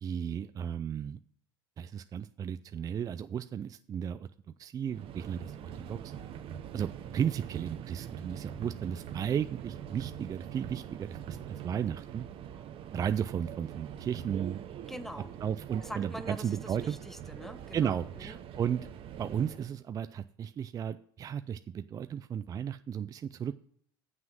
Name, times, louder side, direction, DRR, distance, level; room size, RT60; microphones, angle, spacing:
voice 1, 0.0-1.2 1.8-4.3 4.6-6.1 6.7-12.3 12.9-14.6 15.4-17.0 17.7-18.9 19.2-23.6, right 8 dB, 30° right, 11 dB, 0.4 m, -34 dB
Subway metro underground, 4.9-19.7, right 9 dB, 50° right, 0.9 m, -43 dB
voice 2, 14.9-15.3 15.8-18.4, equal, 5° left, 11 dB, 0.8 m, -44 dB
7.5 x 6.0 x 6.1 m, 0.63 s
hypercardioid pair, 90°, 12 cm